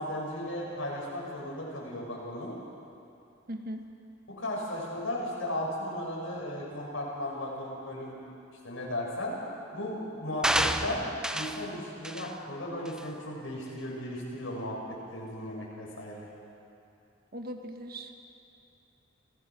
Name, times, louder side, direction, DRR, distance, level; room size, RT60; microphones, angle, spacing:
voice 1, 0.0-2.5 4.3-8.2 8.6-9.3 9.7-11.0 11.3-16.3, left 1 dB, 80° left, -3 dB, 6.7 m, -36 dB
voice 2, 3.5-3.9 17.3-18.2, equal, 50° right, 5 dB, 1.5 m, -39 dB
sound 1, 10.4-11.7 12.0-12.3 12.9-13.0, right 1 dB, 5° right, 0.6 m, -29 dB
28.5 x 17.5 x 6.2 m, 2.7 s
head